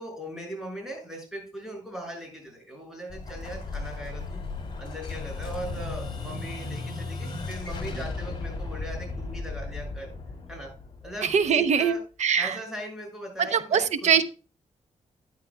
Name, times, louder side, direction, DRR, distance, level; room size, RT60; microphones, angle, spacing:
voice 1, 0.0-4.4 4.8-10.1 10.5-10.7 11.0-12.0 12.3-14.3, right 1 dB, 5° right, 1 dB, 6.2 m, -39 dB
Explosion, 3.1-11.8, left 3 dB, 40° left, 3.1 m, -35 dB
voice 2, 11.2-12.6 13.4-14.3, right 7 dB, 65° right, 13 dB, 0.8 m, -23 dB
13.0 x 9.9 x 2.2 m, 0.34 s
cardioid pair, 105°, 13 cm